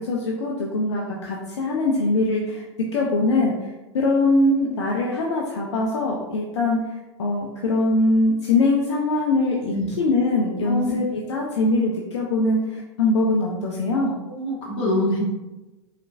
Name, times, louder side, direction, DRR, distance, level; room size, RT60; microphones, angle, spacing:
voice 1, 0.0-14.2, left 2 dB, 65° left, -2 dB, 0.6 m, -22 dB
voice 2, 14.3-15.2, left 1 dB, 40° left, -4 dB, 1.4 m, -25 dB
4.4 x 3.2 x 2.5 m, 1.1 s
figure-of-eight pair, 90°, 15 cm